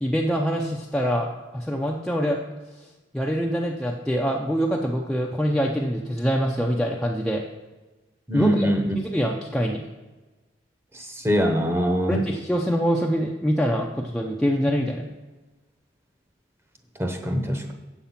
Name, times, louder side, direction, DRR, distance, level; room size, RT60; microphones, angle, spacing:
voice 1, 0.0-2.4 3.1-7.4 8.3-9.8 12.1-15.0, equal, 5° left, -1 dB, 0.6 m, -25 dB
voice 2, 8.3-9.0 10.9-12.3 17.0-17.7, equal, 15° right, 4 dB, 0.9 m, -24 dB
7.7 x 7.2 x 5.7 m, 1.2 s
head